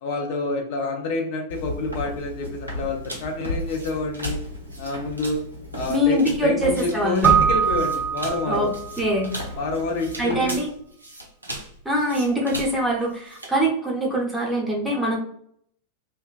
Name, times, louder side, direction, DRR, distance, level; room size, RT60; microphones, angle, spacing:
voice 1, 0.0-4.4 4.8-5.4 5.7-8.7 9.5-10.6, left 2 dB, 50° left, 2 dB, 0.4 m, -28 dB
Walk footsteps, 1.5-10.5, left 1 dB, 90° left, 0.9 m, -36 dB
sound 1, 3.0-13.6, right 1 dB, 80° right, 0.5 m, -39 dB
voice 2, 5.9-7.3 8.5-9.3 10.2-10.7 11.8-15.2, equal, 5° right, -3 dB, 0.7 m, -23 dB
Keyboard (musical), 7.2-9.0, right 7 dB, 25° right, 0.3 m, -21 dB
2.4 x 2.2 x 2.2 m, 0.67 s
figure-of-eight pair, 90°, 0 cm